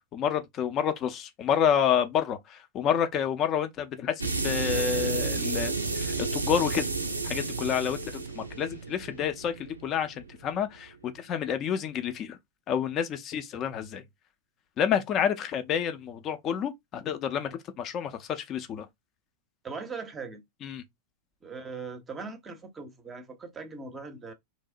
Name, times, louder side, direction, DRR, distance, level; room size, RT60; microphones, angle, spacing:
voice 1, 0.1-6.8 7.2-12.4 12.7-14.0 14.8-17.5 17.8-18.9 20.6-20.8, left 8 dB, 30° left, 0.5 m, -29 dB
sound 1, 4.2-10.7, right 3 dB, 80° right, 0.4 m, -32 dB
voice 2, 19.6-20.4 21.4-24.3, right 4 dB, 20° right, 0.6 m, -40 dB
2.9 x 2.0 x 2.4 m
figure-of-eight pair, 90°, 0 cm